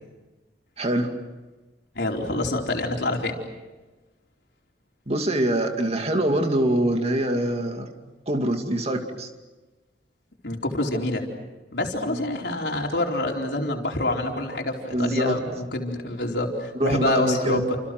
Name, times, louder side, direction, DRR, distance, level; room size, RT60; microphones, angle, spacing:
voice 1, 0.8-1.1 5.1-7.9 8.3-9.3 12.1-12.2 14.9-15.4 16.8-17.7, right 1 dB, 35° right, 4 dB, 2.6 m, -24 dB
voice 2, 1.9-3.3 10.4-11.2 11.7-17.8, left 2 dB, 70° left, 1 dB, 4.4 m, -26 dB
30.0 x 28.5 x 6.2 m, 1.2 s
head